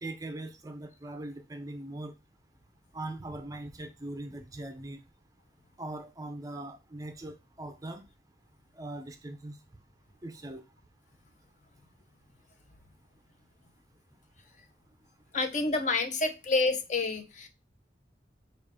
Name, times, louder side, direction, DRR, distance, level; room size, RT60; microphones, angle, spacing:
voice 1, 0.0-2.1 2.9-5.0 5.8-8.1 8.7-9.6 10.2-10.6, right 2 dB, 20° right, 7 dB, 0.4 m, -40 dB
voice 2, 15.3-17.5, left 3 dB, 40° left, 8 dB, 0.5 m, -28 dB
5.0 x 2.4 x 3.4 m, 0.26 s
head